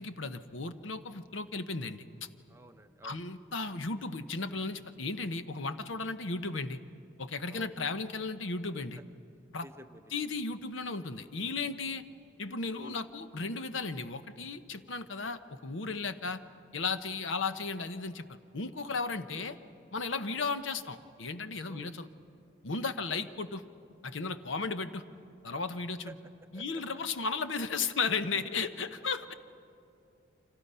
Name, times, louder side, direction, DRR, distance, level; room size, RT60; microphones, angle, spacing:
voice 1, 0.0-2.3 3.0-6.8 7.2-9.0 9.5-9.7 10.1-12.0 12.4-16.4 16.7-19.6 19.9-22.1 22.6-23.6 24.0-25.0 25.4-26.2 26.5-29.3, left 4 dB, 75° left, 10 dB, 0.9 m, -35 dB
voice 2, 2.5-3.2 5.1-5.4 7.5-7.8 9.0-9.1 9.6-10.1 12.8-13.0 15.8-16.0 19.4-19.5 20.2-20.5 21.7-21.9 26.1-26.2 26.5-26.8, right 1 dB, 15° right, 8 dB, 0.7 m, -52 dB
29.5 x 25.5 x 5.6 m, 2.5 s
head